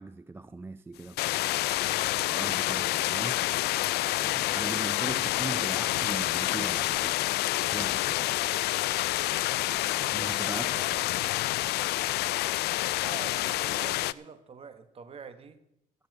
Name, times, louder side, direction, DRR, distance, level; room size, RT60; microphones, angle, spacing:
voice 1, 0.0-1.6 2.2-3.5 4.1-7.2 7.6-8.3 10.1-11.2, right 3 dB, 15° right, 0.4 m, -40 dB
sound 1, 1.2-14.1, left 17 dB, 75° left, 0.4 m, -28 dB
voice 2, 10.7-11.0 12.9-15.6, right 6 dB, 35° right, 1.3 m, -45 dB
13.5 x 7.4 x 7.6 m
cardioid pair, 110°, 17 cm